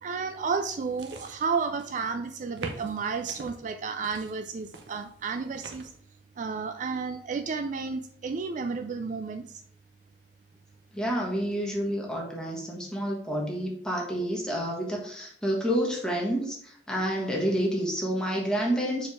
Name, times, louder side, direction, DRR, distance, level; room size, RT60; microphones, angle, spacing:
voice 1, 0.0-5.9 6.4-9.6, right 5 dB, 45° right, 8 dB, 0.4 m, -32 dB
sound 1, 0.7-2.1 2.6-3.5 4.0-6.0, right 3 dB, 85° right, 0.9 m, -44 dB
voice 2, 10.9-19.1, equal, 5° left, -2 dB, 1.5 m, -29 dB
4.8 x 4.5 x 4.9 m, 0.62 s
head